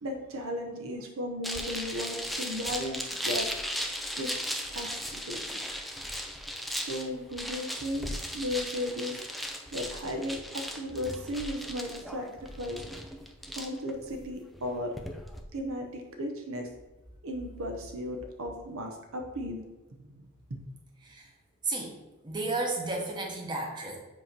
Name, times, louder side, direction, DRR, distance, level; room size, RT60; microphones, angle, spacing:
voice 1, 0.0-3.5 4.2-4.3 4.7-5.4 6.7-9.2 9.7-12.3 12.6-12.8 13.5-15.0 15.5-16.7 17.2-19.6 20.5-20.6, left 1 dB, 65° right, 3 dB, 0.8 m, -35 dB
sound 1, 1.4-15.4, equal, ahead, 0.4 m, -37 dB
voice 2, 22.2-24.0, right 2 dB, 20° right, -1 dB, 1.0 m, -32 dB
7.5 x 2.9 x 5.2 m, 1.1 s
head